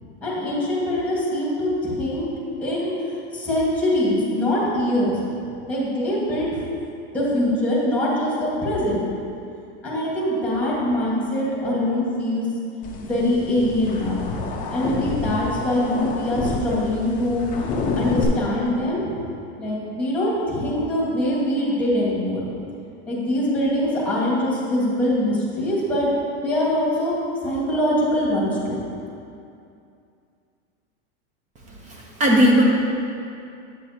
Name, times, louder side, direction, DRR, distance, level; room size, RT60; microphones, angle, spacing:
voice 1, 0.2-2.3 2.6-2.9 3.3-5.2 5.7-6.5 7.1-9.0 9.8-12.5 13.0-17.4 18.0-19.2 19.6-22.5 23.0-26.1 26.4-27.1 27.4-28.8, left 1 dB, 5° left, -6 dB, 1.5 m, -23 dB
sound 1, 12.8-18.3, left 3 dB, 25° left, 0.7 m, -29 dB
voice 2, 31.9-32.6, equal, 20° right, -1 dB, 0.8 m, -17 dB
8.1 x 6.9 x 2.8 m, 2.6 s
supercardioid pair, 155°, 34 cm